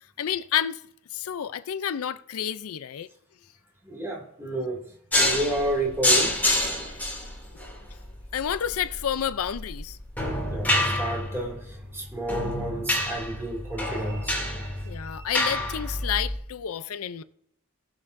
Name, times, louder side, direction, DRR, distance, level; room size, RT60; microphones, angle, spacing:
voice 1, 0.2-0.8 1.1-3.1 8.3-10.0 14.8-17.2, left 9 dB, 80° left, 0.4 m, -30 dB
voice 2, 3.8-6.4 10.5-15.3, right 1 dB, 10° right, 2.3 m, -31 dB
sound 1, 5.1-16.4, left 1 dB, 10° left, 2.5 m, -28 dB
18.5 x 6.6 x 2.6 m
head